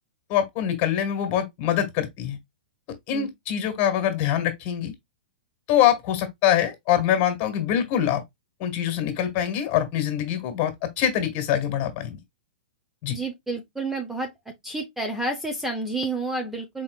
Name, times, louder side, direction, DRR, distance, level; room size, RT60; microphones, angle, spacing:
voice 1, 0.3-2.4 3.1-4.9 5.7-8.2 8.6-12.2 13.0-13.2, left 10 dB, 40° left, 1.9 m, -24 dB
voice 2, 13.1-14.3 14.6-16.8, right 2 dB, 5° right, 0.9 m, -30 dB
4.5 x 4.1 x 2.4 m
hypercardioid pair, 125°, 5 cm